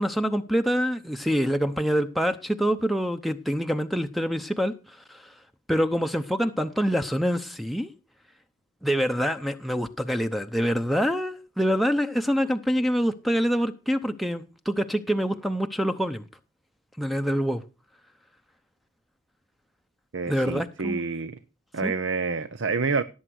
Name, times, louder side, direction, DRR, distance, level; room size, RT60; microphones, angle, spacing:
voice 1, 0.0-5.3 5.7-7.9 8.8-16.2 17.0-17.6 20.3-21.0 21.8-21.9, equal, ahead, 0.7 m, -26 dB
voice 2, 20.1-21.4 21.7-23.0, right 4 dB, 65° right, 0.8 m, -28 dB
17.5 x 8.0 x 6.3 m
head